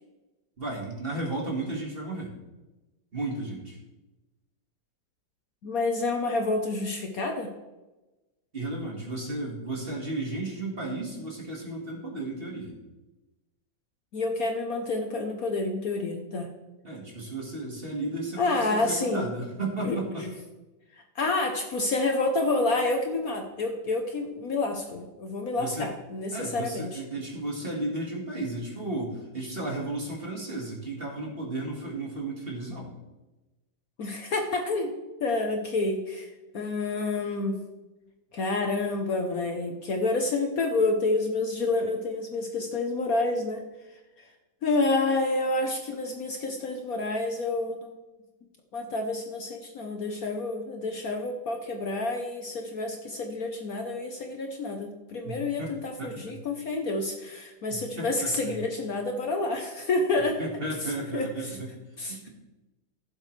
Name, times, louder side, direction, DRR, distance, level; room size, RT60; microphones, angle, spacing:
voice 1, 0.6-2.3 3.1-3.8 8.5-12.8 16.8-20.2 25.6-25.9 26.3-32.9 55.2-55.7 56.0-56.4 57.7-58.6 60.4-61.7 62.1-62.3, right 2 dB, 30° right, -1 dB, 2.1 m, -34 dB
voice 2, 5.6-7.5 14.1-16.5 18.4-19.3 19.8-20.3 21.1-27.0 34.0-34.9 35.2-36.3 36.5-37.6 38.3-43.6 44.2-44.3 44.6-47.9 48.7-60.4 61.1-61.6 62.0-62.3, left 2 dB, 55° left, 4 dB, 1.3 m, -29 dB
15.5 x 7.5 x 3.3 m, 1.1 s
omnidirectional pair, 2.0 m